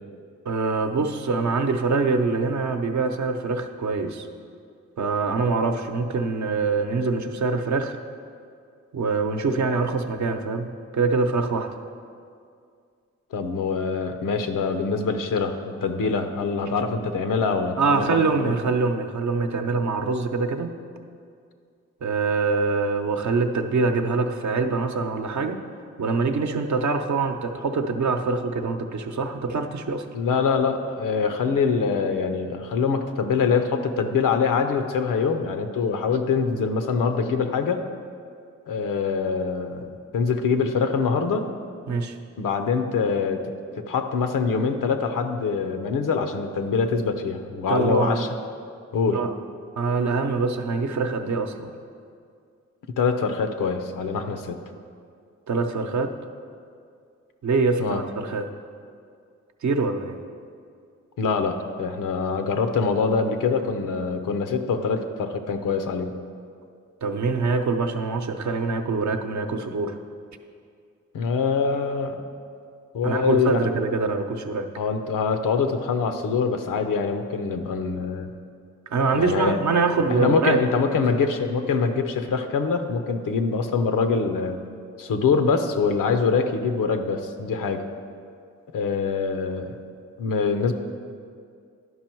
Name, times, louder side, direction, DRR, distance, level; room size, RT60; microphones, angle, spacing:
voice 1, 0.4-4.3 5.0-8.0 8.9-10.7 10.9-11.7 17.8-20.8 22.0-25.6 26.0-30.1 41.9-42.2 47.7-48.2 49.1-49.3 49.8-51.7 55.5-56.1 57.4-58.5 59.6-60.2 67.0-70.0 73.0-74.7 78.9-80.6, right 4 dB, 65° right, 5 dB, 0.7 m, -24 dB
voice 2, 13.3-18.5 30.1-37.8 38.7-41.4 42.4-43.4 43.8-48.3 48.9-49.2 53.0-54.6 57.8-58.0 61.2-66.2 71.1-72.2 72.9-73.7 74.8-78.3 79.1-79.6 80.1-84.6 85.0-87.8 88.7-89.8 90.2-90.7, left 5 dB, 85° left, 7 dB, 0.7 m, -24 dB
11.0 x 5.4 x 4.5 m, 2.3 s
cardioid pair, 55°, 31 cm